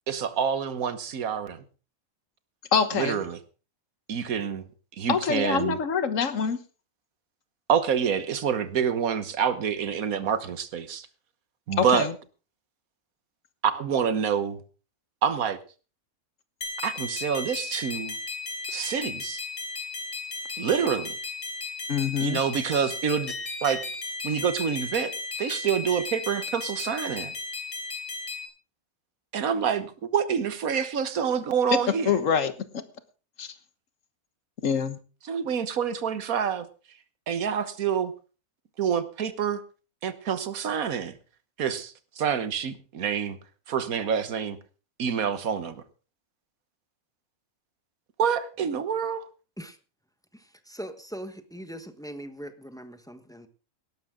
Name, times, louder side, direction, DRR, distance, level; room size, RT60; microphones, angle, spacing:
voice 1, 0.1-1.6 2.9-3.4 4.1-4.7 4.9-5.8 7.7-11.1 11.7-12.1 13.6-14.6 15.2-15.6 16.8-18.1 18.7-19.4 20.6-21.2 22.2-23.3 23.6-23.8 24.2-25.1 25.4-27.3 29.3-32.2 35.2-36.7 37.3-38.1 38.8-39.6 40.0-41.2 41.6-43.4 43.7-44.6 45.0-45.8 48.2-49.3, right 7 dB, 75° right, 1.6 m, -27 dB
voice 2, 2.7-3.2 5.1-6.6 11.8-12.1 21.9-22.4 32.0-32.5 33.4-33.5 34.6-35.0, left 6 dB, 60° left, 1.6 m, -25 dB
sound 1, 16.6-28.5, left 3 dB, 85° left, 3.8 m, -35 dB
voice 3, 50.3-53.5, equal, 5° left, 1.1 m, -41 dB
18.0 x 12.0 x 3.8 m
omnidirectional pair, 1.5 m